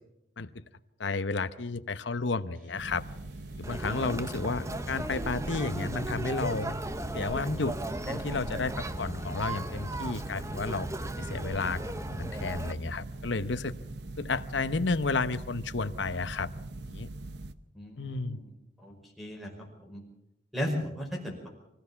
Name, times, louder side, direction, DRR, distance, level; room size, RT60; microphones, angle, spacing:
voice 1, 1.0-3.0 3.6-6.7 7.1-7.7 8.1-10.9 11.2-11.8 12.1-13.7 14.2-16.5 16.9-17.1 18.0-18.4, left 3 dB, 70° left, 12 dB, 0.9 m, -32 dB
sound 1, 2.5-16.9, right 2 dB, 45° right, 7.8 m, -53 dB
sound 2, 2.8-17.5, right 2 dB, 60° right, 0.9 m, -42 dB
Conversation, 3.6-12.7, right 1 dB, 15° right, 0.8 m, -36 dB
voice 2, 17.8-18.5 18.8-19.5 19.8-20.0 20.5-21.5, equal, ahead, -2 dB, 5.2 m, -36 dB
24.5 x 15.5 x 7.1 m, 0.88 s
head